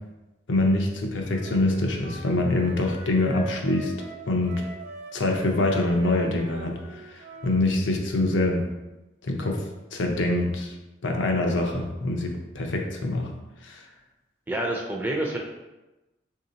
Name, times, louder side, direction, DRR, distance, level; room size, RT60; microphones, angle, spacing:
voice 1, 0.5-3.9 4.3-4.6 5.1-6.8 7.1-8.6 9.2-9.6 9.9-10.7 11.0-13.3 13.6-13.8, left 2 dB, 85° left, 2 dB, 0.6 m, -25 dB
Wind instrument woodwind instrument, 1.3-7.6, right 3 dB, 65° right, 0.8 m, -42 dB
voice 2, 14.5-15.4, right 1 dB, 10° right, -1 dB, 0.3 m, -27 dB
3.1 x 2.8 x 3.8 m, 1.0 s
head